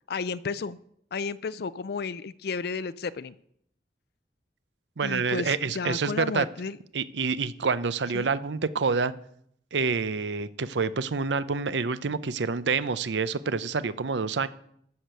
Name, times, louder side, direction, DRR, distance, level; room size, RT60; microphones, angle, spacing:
voice 1, 0.1-0.8 1.1-3.3 5.0-6.8 8.1-8.3, left 4 dB, 60° left, 15 dB, 0.4 m, -32 dB
voice 2, 5.0-6.5 6.9-9.1 9.7-14.5, right 4 dB, 85° right, 15 dB, 0.6 m, -27 dB
13.5 x 6.6 x 6.8 m, 0.69 s
head